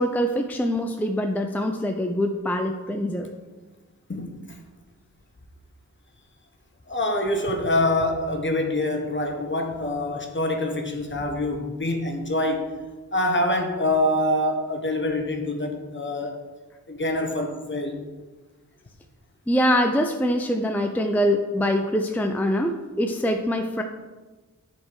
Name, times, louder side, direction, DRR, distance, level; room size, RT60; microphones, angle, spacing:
voice 1, 0.0-3.3 19.5-23.8, equal, 5° left, 4 dB, 0.5 m, -24 dB
voice 2, 6.9-12.7 13.1-16.3 16.9-18.0, left 1 dB, 40° left, 3 dB, 1.2 m, -25 dB
10.5 x 4.4 x 4.7 m, 1.2 s
wide cardioid pair, 105°, 31 cm